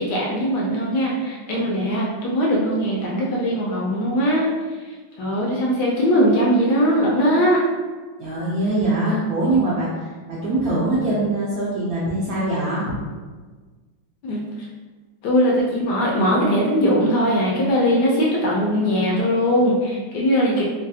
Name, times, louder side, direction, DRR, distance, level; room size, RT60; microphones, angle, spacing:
voice 1, 0.0-4.5 5.2-7.6 14.2-14.4 15.2-20.6, equal, 75° left, -3 dB, 1.1 m, -20 dB
voice 2, 8.2-13.0, right 2 dB, 70° right, -7 dB, 0.8 m, -23 dB
3.2 x 2.3 x 2.7 m, 1.4 s
omnidirectional pair, 2.1 m